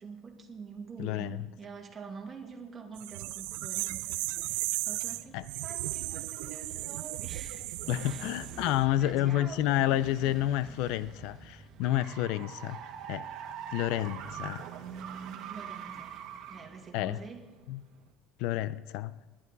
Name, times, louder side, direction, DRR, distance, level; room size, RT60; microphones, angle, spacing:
voice 1, 0.0-8.3 8.6-9.8 15.5-16.2 16.5-17.5, right 5 dB, 20° right, 2.1 m, -46 dB
voice 2, 1.0-1.5 5.3-5.5 7.9-12.8 13.1-13.2 13.7-14.7 16.9-17.2 17.7-17.8 18.4-19.1, left 13 dB, 70° left, 0.5 m, -30 dB
sound 1, 3.0-8.8, right 20 dB, 85° right, 0.4 m, -36 dB
sound 2, 4.0-5.2 5.6-18.1, right 8 dB, 55° right, 1.4 m, -45 dB
sound 3, 4.2-17.2, left 3 dB, 15° left, 0.9 m, -57 dB
20.5 x 11.5 x 4.1 m
cardioid pair, 155°, 0 cm